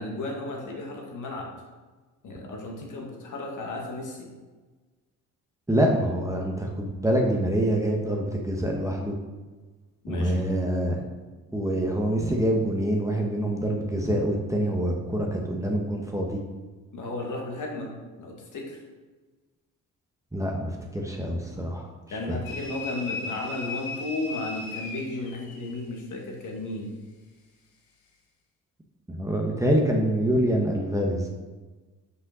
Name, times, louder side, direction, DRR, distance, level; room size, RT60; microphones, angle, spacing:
voice 1, 0.0-1.5 2.2-4.3 10.0-10.5 16.9-17.9 18.2-18.8 22.1-26.9, left 2 dB, 60° left, -1 dB, 2.5 m, -34 dB
voice 2, 5.7-9.2 10.1-11.0 11.5-16.4 20.3-21.9 22.3-22.4 29.1-31.3, right 1 dB, 10° right, 0 dB, 1.3 m, -25 dB
sound 1, 22.5-25.8, left 3 dB, 80° left, 1.5 m, -36 dB
6.5 x 5.4 x 6.3 m, 1.3 s
supercardioid pair, 75°, 35 cm